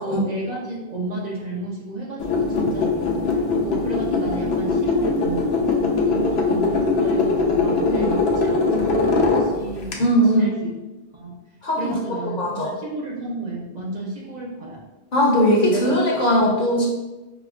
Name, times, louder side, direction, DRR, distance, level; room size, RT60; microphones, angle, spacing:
voice 1, 0.0-2.9 3.6-5.8 6.0-10.0 10.3-10.7 11.1-11.4 11.8-14.8 15.6-15.9 16.3-16.5, right 2 dB, 50° right, -4 dB, 0.6 m, -31 dB
sound 1, 2.2-9.9, left 3 dB, 85° left, 0.8 m, -21 dB
voice 2, 9.9-10.5 11.6-12.7 15.1-16.9, equal, 55° left, -3 dB, 0.8 m, -20 dB
4.7 x 2.1 x 2.4 m, 1.1 s
omnidirectional pair, 1.0 m